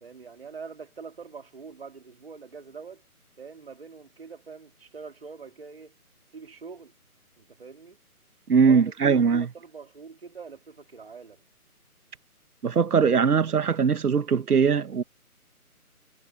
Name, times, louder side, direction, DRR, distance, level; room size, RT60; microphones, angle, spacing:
voice 1, 0.0-3.0 3.4-5.9 6.3-6.9 7.4-8.0 8.6-11.4, right 5 dB, 40° right, 2.4 m, -43 dB
voice 2, 8.5-9.5 12.6-15.0, right 6 dB, 80° right, 1.0 m, -21 dB
hypercardioid pair, 175°, 45 cm